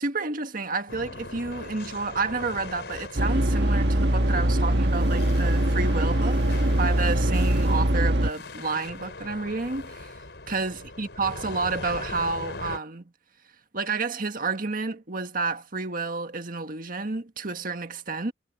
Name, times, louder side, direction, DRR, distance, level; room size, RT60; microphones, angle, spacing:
voice 1, 0.0-10.1 10.5-13.1 13.7-18.3, right 4 dB, 50° right, 1.7 m, -30 dB
sound 1, 0.9-12.8, left 2 dB, 75° left, 5.1 m, -40 dB
sound 2, 3.2-8.3, right 1 dB, 70° right, 1.7 m, -22 dB
head